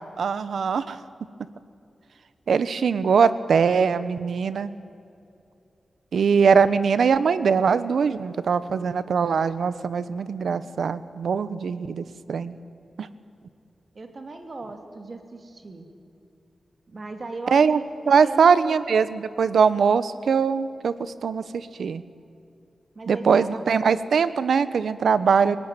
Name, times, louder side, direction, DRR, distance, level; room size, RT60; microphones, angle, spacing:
voice 1, 0.2-1.0 2.5-4.7 6.1-12.6 13.0-13.1 17.5-17.8 18.1-22.0 23.1-25.6, right 6 dB, 90° right, 14 dB, 1.1 m, -21 dB
voice 2, 13.9-15.9 16.9-18.8 22.9-23.5, right 3 dB, 40° right, 6 dB, 2.7 m, -38 dB
29.0 x 18.5 x 9.3 m, 2.6 s
wide cardioid pair, 150°, 0 cm